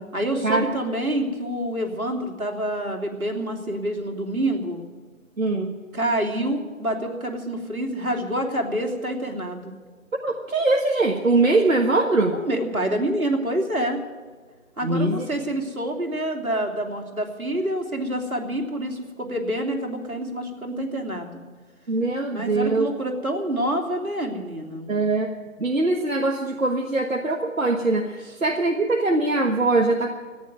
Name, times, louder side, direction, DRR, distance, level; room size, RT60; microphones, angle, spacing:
voice 1, 0.1-4.8 5.9-9.7 12.3-14.0 14.8-21.4 22.3-24.9, right 1 dB, 85° right, 2 dB, 3.0 m, -27 dB
voice 2, 5.4-5.7 10.2-12.4 14.8-15.3 21.9-22.9 24.9-25.3 25.6-30.1, right 2 dB, 70° right, 2 dB, 1.6 m, -22 dB
14.5 x 9.9 x 9.3 m, 1.5 s
figure-of-eight pair, 170°, 41 cm